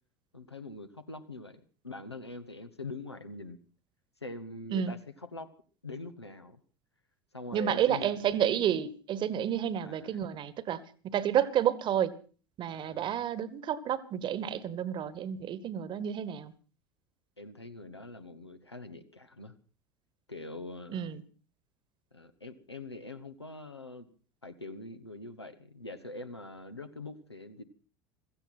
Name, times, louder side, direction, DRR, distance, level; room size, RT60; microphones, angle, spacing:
voice 1, 0.3-3.6 4.2-5.0 5.3-5.5 5.8-6.6 7.3-8.4 9.8-10.2 12.7-13.2 17.4-19.6 20.3-21.1 22.1-24.1 24.4-27.6, left 2 dB, 85° left, 1.3 m, -43 dB
voice 2, 7.5-12.1 12.6-16.5 20.9-21.2, right 9 dB, 35° right, 1.3 m, -30 dB
16.0 x 14.5 x 5.9 m
figure-of-eight pair, 75°, 13 cm